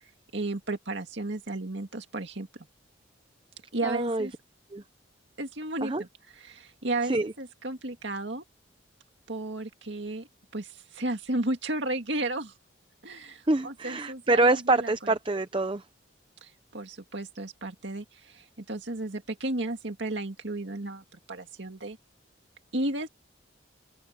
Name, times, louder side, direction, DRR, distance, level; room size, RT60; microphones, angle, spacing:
voice 1, 0.0-2.5 3.7-4.3 5.4-6.1 6.3-8.4 9.3-10.3 10.5-12.5 13.0-15.1 16.4-22.0 22.7-23.1, right 2 dB, 70° right, 2.0 m, -33 dB
voice 2, 3.8-4.3 4.7-4.8 5.8-6.0 7.1-7.3 13.5-15.8, right 2 dB, 25° right, 0.6 m, -25 dB
open air
head